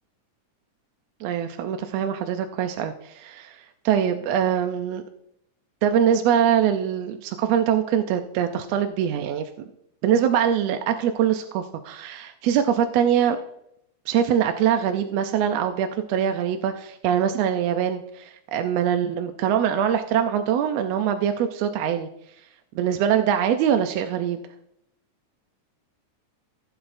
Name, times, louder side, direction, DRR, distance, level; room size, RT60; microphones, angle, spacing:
voice 1, 1.2-5.0 5.8-9.5 10.0-13.4 14.1-22.1 22.7-24.4, right 9 dB, 75° right, 7 dB, 1.6 m, -23 dB
15.0 x 8.0 x 2.6 m, 0.76 s
omnidirectional pair, 3.4 m